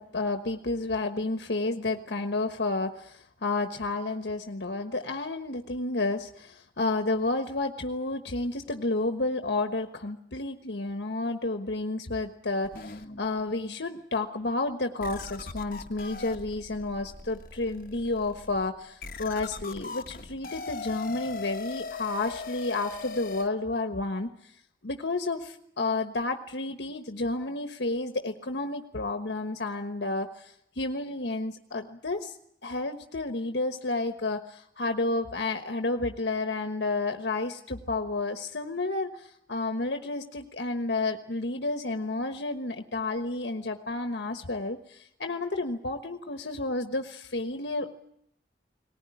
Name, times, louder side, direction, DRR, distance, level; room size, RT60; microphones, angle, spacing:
voice 1, 0.0-24.3 24.8-32.3 32.6-47.9, left 2 dB, 85° left, 7 dB, 1.3 m, -31 dB
sound 1, 12.6-13.8 14.4-14.5 15.0-23.5, left 4 dB, 50° left, 1.0 m, -40 dB
19.0 x 19.0 x 9.8 m, 0.73 s
head